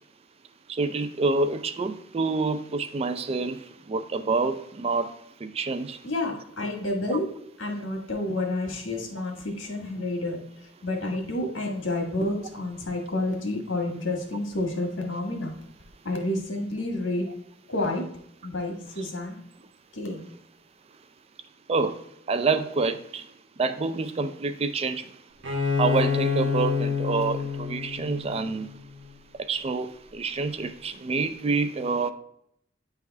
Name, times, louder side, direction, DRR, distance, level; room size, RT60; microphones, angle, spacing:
voice 1, 0.7-5.1 5.4-6.0 21.7-23.3 23.6-25.1 25.8-28.7 29.5-32.1, right 4 dB, 30° right, 0.4 m, -27 dB
voice 2, 6.0-7.3 7.6-15.5 16.0-17.3 17.7-18.1 18.4-19.4 19.9-20.3, left 2 dB, 85° left, 1.6 m, -30 dB
Bowed string instrument, 25.4-29.0, left 5 dB, 85° right, 1.2 m, -28 dB
9.4 x 3.5 x 3.4 m
head